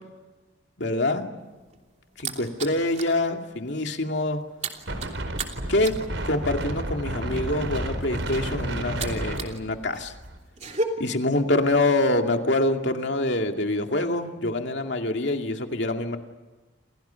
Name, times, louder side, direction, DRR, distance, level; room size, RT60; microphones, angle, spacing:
voice 1, 0.8-1.3 2.2-4.4 5.7-6.0 6.2-10.1 11.0-16.2, left 2 dB, 65° left, 4 dB, 2.5 m, -25 dB
sound 1, 1.4-3.2 3.5-3.8 4.0-9.6 9.9-10.8, right 3 dB, 40° right, 3.0 m, -35 dB
Wind, 4.9-10.4, right 1 dB, 80° right, 4.3 m, -31 dB
29.0 x 28.5 x 5.8 m, 1.2 s
head